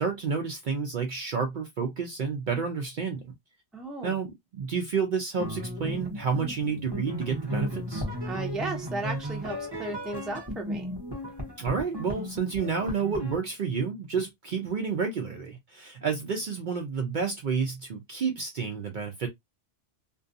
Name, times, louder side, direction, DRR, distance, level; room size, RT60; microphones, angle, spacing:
voice 1, 0.0-3.3 4.0-8.0 11.6-19.3, right 5 dB, 55° right, 0.6 m, -30 dB
voice 2, 3.7-4.2 8.2-10.9, right 2 dB, ahead, 0.5 m, -35 dB
sound 1, 5.3-13.3, equal, 25° right, 0.9 m, -35 dB
2.5 x 2.3 x 2.5 m
omnidirectional pair, 1.1 m